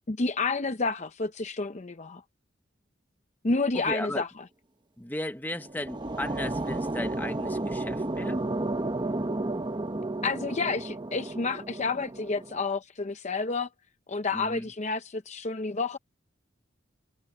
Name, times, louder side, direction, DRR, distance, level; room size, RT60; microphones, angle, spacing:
voice 1, 0.1-2.2 3.4-4.3 10.2-13.7 14.1-16.0, left 3 dB, 35° left, 0.7 m, -30 dB
voice 2, 3.7-4.2 5.0-8.4 14.3-14.7, left 1 dB, 10° left, 1.2 m, -35 dB
sound 1, 5.5-12.6, right 2 dB, 25° right, 1.1 m, -32 dB
head